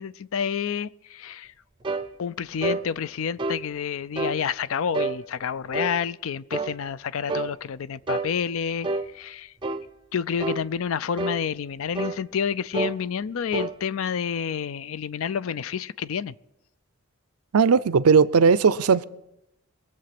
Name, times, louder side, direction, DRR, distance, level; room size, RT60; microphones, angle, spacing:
voice 1, 0.0-1.5 2.2-8.9 9.1-9.5 10.1-16.3, left 7 dB, 70° left, 0.4 m, -29 dB
sound 1, 1.8-2.1 2.6-2.8 3.4-3.6 4.1-4.4 4.9-5.2 5.7-6.0 6.5-6.7 7.3-7.5 8.1-8.3 8.8-9.1 9.6-9.8 10.4-10.6 11.2-11.4 11.9-12.2 12.7-13.0 13.5-13.7, right 3 dB, 20° right, 0.5 m, -28 dB
voice 2, 17.5-19.0, right 5 dB, 90° right, 0.5 m, -18 dB
22.5 x 7.6 x 5.9 m
head